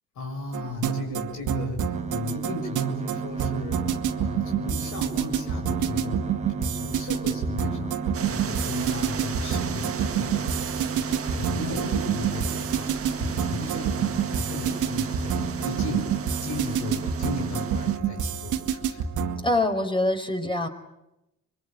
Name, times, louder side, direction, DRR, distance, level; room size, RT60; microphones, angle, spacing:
voice 1, 0.1-3.8 4.1-8.0 8.2-10.5 10.8-16.1 16.4-19.1, left 3 dB, 75° left, 2 dB, 6.4 m, -36 dB
sound 1, 0.5-19.4, right 8 dB, 85° right, 2.3 m, -28 dB
sound 2, 1.9-17.9, right 4 dB, 20° right, 1.3 m, -34 dB
sound 3, 8.1-18.0, right 7 dB, 50° right, 1.8 m, -37 dB
voice 2, 19.4-20.7, left 1 dB, 15° left, 6 dB, 4.7 m, -24 dB
25.5 x 23.0 x 9.1 m, 0.90 s
cardioid pair, 90°, 30 cm